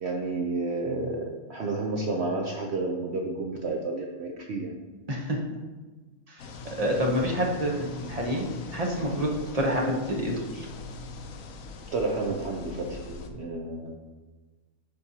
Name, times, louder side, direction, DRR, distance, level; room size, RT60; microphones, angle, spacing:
voice 1, 0.0-4.7 11.9-13.9, right 3 dB, 55° right, 0 dB, 0.8 m, -31 dB
voice 2, 5.1-5.4 6.3-6.4 6.8-8.5 8.7-10.7, equal, 30° right, -1 dB, 1.0 m, -28 dB
sound 1, 6.4-13.3, left 4 dB, 65° left, 1.0 m, -41 dB
11.5 x 4.4 x 2.8 m, 1.3 s
omnidirectional pair, 1.6 m